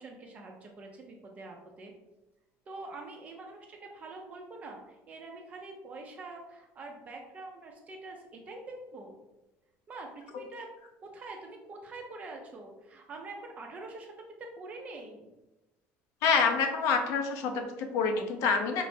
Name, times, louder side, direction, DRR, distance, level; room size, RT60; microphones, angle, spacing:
voice 1, 0.0-1.9 2.7-9.2 9.9-10.7 11.0-14.1 14.4-15.3, right 2 dB, 25° right, 1 dB, 0.5 m, -45 dB
voice 2, 16.2-18.8, left 5 dB, 60° left, 4 dB, 0.7 m, -27 dB
5.3 x 3.2 x 2.7 m, 1.0 s
cardioid pair, 175°, 6 cm